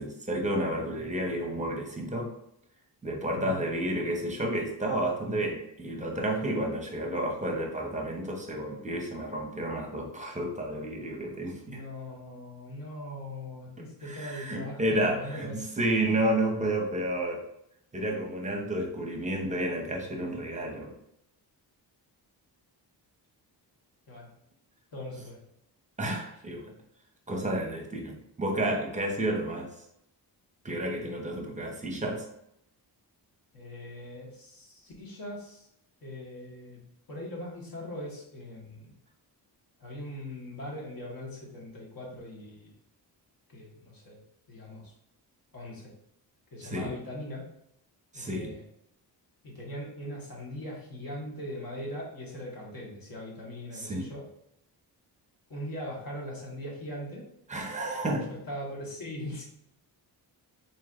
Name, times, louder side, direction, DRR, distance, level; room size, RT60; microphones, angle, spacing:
voice 1, 0.0-2.3 3.0-11.8 14.0-17.4 17.9-20.9 26.0-26.6 27.3-29.7 30.6-32.3 46.6-46.9 48.1-48.5 53.7-54.1 57.5-58.3, right 1 dB, 15° right, 1 dB, 0.7 m, -31 dB
voice 2, 3.3-3.7 11.7-15.6 24.1-24.3 24.9-25.4 33.5-35.7 36.0-36.8 37.1-38.9 39.8-42.7 43.5-44.2 44.5-44.9 45.5-45.9 46.5-47.5 48.1-48.6 49.4-54.3 55.5-57.2 58.5-59.4, left 1 dB, 55° left, -3 dB, 1.4 m, -40 dB
4.1 x 3.1 x 2.5 m, 0.76 s
wide cardioid pair, 115°, 42 cm